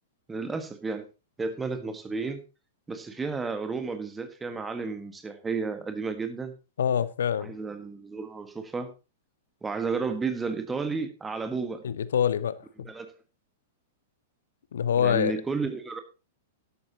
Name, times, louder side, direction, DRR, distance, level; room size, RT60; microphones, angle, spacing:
voice 1, 0.3-1.1 1.4-2.4 2.9-6.5 7.4-8.9 9.6-11.8 12.8-13.1 15.0-16.0, right 4 dB, 10° right, 1.6 m, -32 dB
voice 2, 6.8-7.5 11.8-12.5 14.7-15.3, left 8 dB, 60° left, 0.6 m, -25 dB
12.0 x 12.0 x 2.9 m
figure-of-eight pair, 100°, 0 cm